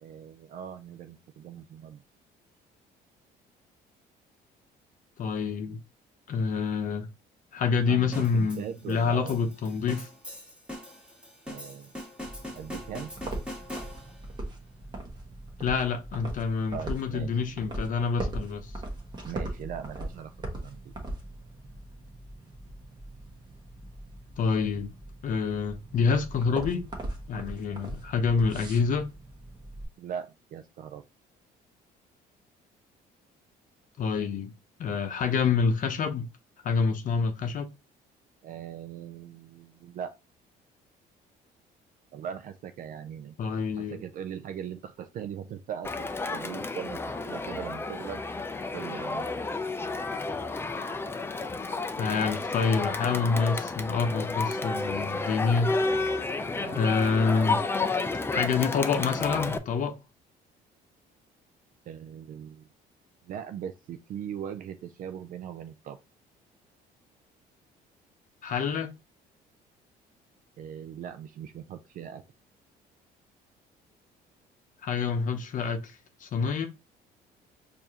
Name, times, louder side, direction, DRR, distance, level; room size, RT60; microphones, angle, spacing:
voice 1, 0.0-2.0 5.7-5.8 7.9-9.5 11.5-11.9 12.6-13.1 16.7-17.4 19.3-20.9 30.0-31.0 38.4-40.1 42.1-43.3 43.8-48.2 48.7-49.4 56.5-56.8 61.9-62.7 63.2-66.0 70.6-72.2, right 9 dB, 55° right, 0.4 m, -40 dB
voice 2, 5.2-5.8 6.3-7.1 7.5-10.1 15.6-18.7 24.4-24.9 25.2-26.8 27.3-29.1 34.0-34.5 34.8-36.3 36.6-37.7 43.4-44.0 52.0-55.8 56.7-57.6 58.3-60.0 68.4-68.9 74.8-76.7, left 5 dB, 50° left, 0.7 m, -27 dB
sound 1, 8.1-14.3, left 1 dB, 5° right, 1.7 m, -42 dB
sound 2, 12.2-29.9, right 1 dB, 25° right, 1.2 m, -40 dB
Crowd, 45.8-59.6, left 3 dB, 15° left, 0.4 m, -31 dB
4.6 x 2.7 x 2.8 m
cardioid pair, 110°, 17 cm